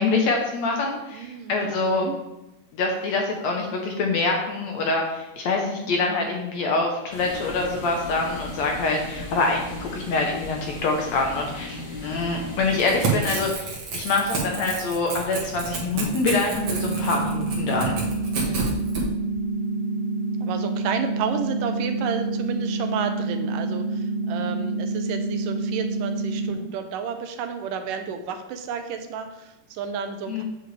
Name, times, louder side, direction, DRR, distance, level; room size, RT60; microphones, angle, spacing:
voice 1, 0.0-2.1 2.7-18.0 30.3-30.4, left 3 dB, 70° left, 1 dB, 1.8 m, -25 dB
voice 2, 1.1-2.2 18.4-18.8 20.4-30.4, right 6 dB, 80° right, 7 dB, 2.3 m, -31 dB
sound 1, 7.1-13.5, left 2 dB, 45° left, 1.5 m, -36 dB
Crackle / Tearing, 12.7-19.0, right 4 dB, 50° right, 2.1 m, -30 dB
sound 2, 16.5-26.5, right 3 dB, 5° left, 2.3 m, -27 dB
7.9 x 7.4 x 3.3 m, 0.96 s
omnidirectional pair, 3.9 m